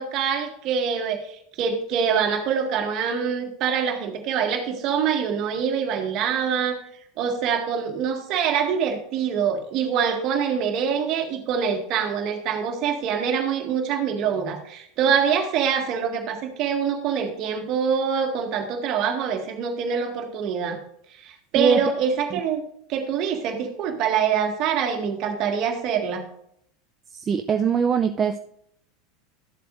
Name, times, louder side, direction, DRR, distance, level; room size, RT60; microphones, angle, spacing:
voice 1, 0.0-6.8 7.2-20.8 21.1-22.6 22.9-26.3, right 7 dB, 50° right, 4 dB, 1.8 m, -25 dB
voice 2, 27.3-28.4, right 6 dB, 30° right, 6 dB, 0.5 m, -21 dB
13.5 x 7.6 x 2.6 m, 0.70 s
hypercardioid pair, 85°, 0 cm